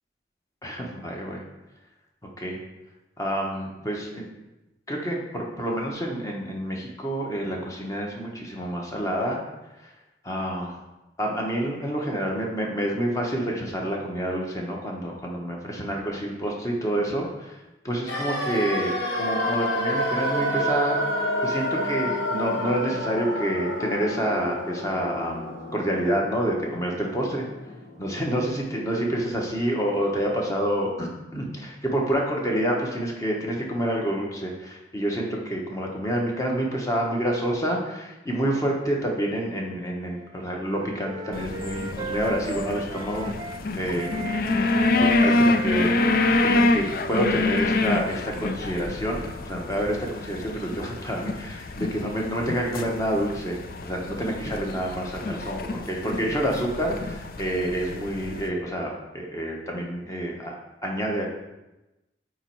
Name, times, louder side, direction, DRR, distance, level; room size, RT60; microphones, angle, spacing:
voice 1, 0.6-1.4 2.4-2.6 3.2-4.3 4.9-9.4 9.8-9.9 10.2-10.8 11.2-17.6 17.8-27.5 28.0-43.3 43.7-44.1 45.0-45.9 46.4-60.5 60.8-61.2, right 1 dB, 20° left, -1 dB, 1.1 m, -28 dB
sound 1, 18.1-28.0 28.3-28.4, equal, 75° left, 1.2 m, -29 dB
Wind instrument woodwind instrument, 40.1-43.6 44.0-47.7, right 2 dB, 25° right, 0.3 m, -37 dB
sound 2, 41.3-58.5, left 2 dB, 55° left, 0.5 m, -27 dB
9.0 x 3.1 x 4.6 m, 0.99 s
head